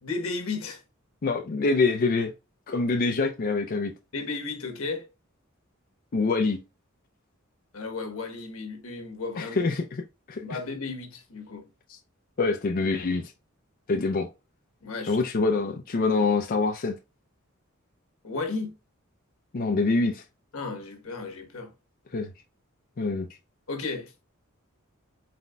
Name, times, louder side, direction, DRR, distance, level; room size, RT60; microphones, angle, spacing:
voice 1, 0.0-0.8 4.1-5.1 7.7-9.7 10.4-11.6 14.8-15.2 18.2-18.7 20.5-21.7 23.7-24.1, left 3 dB, 80° left, 1.2 m, -34 dB
voice 2, 1.2-2.3 2.7-3.9 6.1-6.6 9.4-10.0 10.3-10.4 11.9-12.0 12.4-13.3 13.9-14.3 15.1-16.9 19.5-20.2 22.1-22.3 23.0-23.3, left 3 dB, 45° left, 0.5 m, -25 dB
4.2 x 4.0 x 2.2 m
head